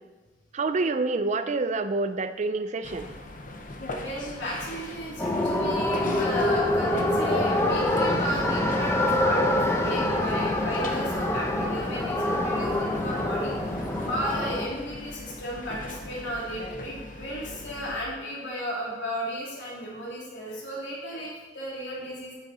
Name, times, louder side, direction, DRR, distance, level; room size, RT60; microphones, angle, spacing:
voice 1, 0.5-3.1, right 3 dB, 40° right, 10 dB, 0.4 m, -27 dB
sound 1, 2.8-18.0, left 1 dB, 50° left, 0.8 m, -41 dB
voice 2, 4.0-13.5 13.9-22.3, equal, 80° left, -5 dB, 2.9 m, -34 dB
sound 2, 5.2-14.7, left 1 dB, 15° left, 0.8 m, -25 dB
8.6 x 6.5 x 4.2 m, 1.2 s
head